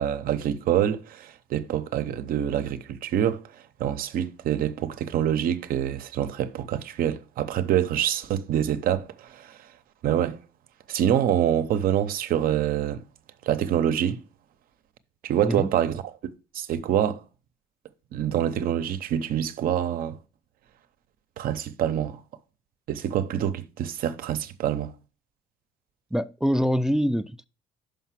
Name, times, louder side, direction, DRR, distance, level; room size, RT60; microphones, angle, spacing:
voice 1, 0.0-3.4 3.8-9.6 10.0-10.4 10.9-13.0 13.5-14.2 15.2-15.9 16.2-17.2 18.1-20.2 21.4-22.2 22.9-24.9, right 10 dB, 65° right, 0.8 m, -26 dB
voice 2, 26.1-27.4, equal, 5° right, 0.3 m, -24 dB
5.8 x 5.3 x 5.8 m
cardioid pair, 120°, 16 cm